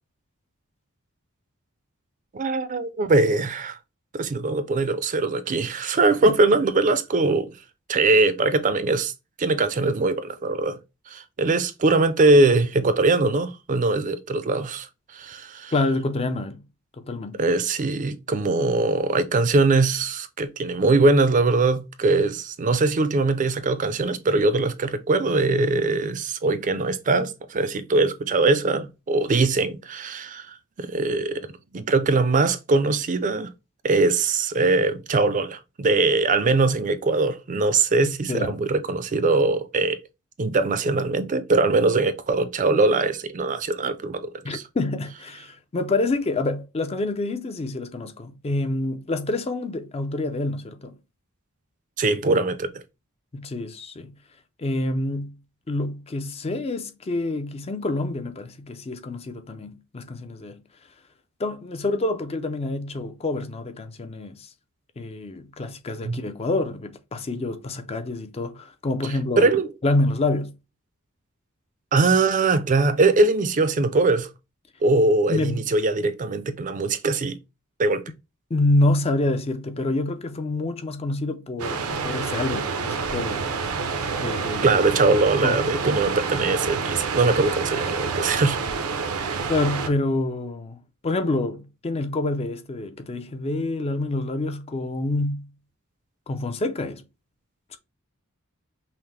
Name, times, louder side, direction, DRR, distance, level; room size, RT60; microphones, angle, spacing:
voice 1, 2.3-3.8 4.1-7.5 7.9-9.1 9.4-10.8 11.1-14.9 15.1-15.7 17.4-31.4 31.7-33.5 33.8-40.0 40.4-44.6 52.0-52.8 66.0-66.2 69.4-69.7 71.9-74.3 74.8-77.4 77.8-78.0 84.6-88.6 89.3-89.5, right 3 dB, 35° right, 0.4 m, -21 dB
voice 2, 15.7-16.6 17.0-17.4 38.3-38.6 44.4-51.0 53.3-54.1 54.6-55.4 55.7-60.6 61.4-64.5 65.0-69.5 69.8-70.6 75.3-75.7 78.5-83.5 83.8-84.8 85.4-85.6 89.5-95.5 96.3-97.0, left 2 dB, 30° left, 0.4 m, -27 dB
sound 1, 81.6-89.9, right 5 dB, 80° right, 0.6 m, -28 dB
5.6 x 2.1 x 3.2 m
head